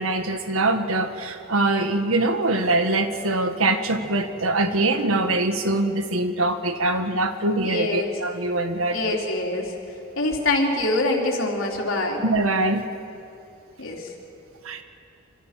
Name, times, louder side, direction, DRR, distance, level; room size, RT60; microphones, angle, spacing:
voice 1, 0.0-9.2 12.2-12.9 14.6-14.8, right 2 dB, 90° right, 7 dB, 1.7 m, -23 dB
voice 2, 7.6-8.1 8.9-9.8 10.2-12.2 13.8-14.1, left 2 dB, 75° left, 0 dB, 3.8 m, -24 dB
26.5 x 26.0 x 6.0 m, 2.7 s
head